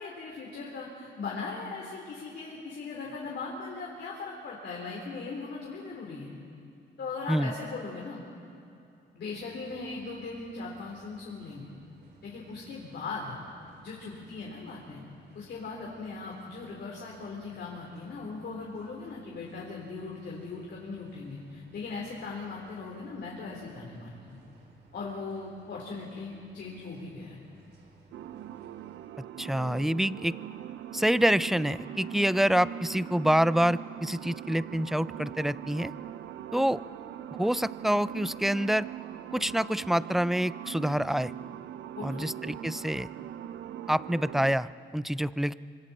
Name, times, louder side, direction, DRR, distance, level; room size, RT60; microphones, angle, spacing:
voice 1, 0.0-6.3 7.0-8.2 9.1-11.7 12.2-13.4 13.8-15.0 15.3-24.4 24.9-27.4 30.1-30.3 42.0-42.3, left 4 dB, 60° left, -2 dB, 3.8 m, -39 dB
sound 1, 9.2-29.1, right 4 dB, 60° right, 6.0 m, -59 dB
sound 2, 28.1-44.6, right 11 dB, 75° right, 0.8 m, -41 dB
voice 2, 29.4-30.3 30.9-35.9 36.5-36.8 37.3-38.9 39.3-41.3 42.0-43.1 43.9-45.5, equal, ahead, 16 dB, 0.4 m, -27 dB
26.0 x 25.0 x 4.3 m, 2.6 s
cardioid pair, 90°, 20 cm